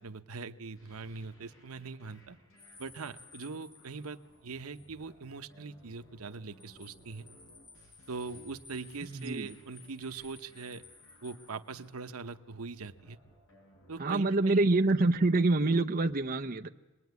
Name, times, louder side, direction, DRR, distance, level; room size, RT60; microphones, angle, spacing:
voice 1, 0.0-2.4 2.8-7.3 8.1-10.8 11.2-13.2 13.9-14.7, right 4 dB, 85° right, 10 dB, 1.0 m, -41 dB
sound 1, 0.7-16.2, left 1 dB, 65° left, 7.8 m, -61 dB
sound 2, 2.6-4.9 5.2-5.3 6.3-12.0, left 4 dB, 20° left, 5.0 m, -57 dB
voice 2, 9.1-9.6 14.0-16.7, right 2 dB, 40° right, 4 dB, 0.8 m, -26 dB
25.5 x 20.0 x 9.5 m, 1.1 s
head